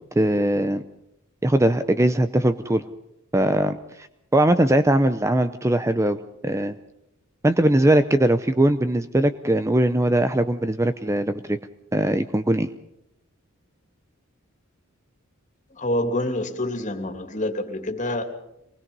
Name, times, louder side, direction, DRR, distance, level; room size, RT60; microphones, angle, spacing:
voice 1, 0.1-0.8 1.4-2.8 3.3-3.8 4.3-6.2 6.4-6.8 7.4-11.6 11.9-12.7, right 1 dB, 15° right, 11 dB, 0.7 m, -20 dB
voice 2, 15.7-18.2, left 1 dB, 40° left, 4 dB, 3.0 m, -27 dB
24.5 x 20.0 x 5.5 m, 0.82 s
head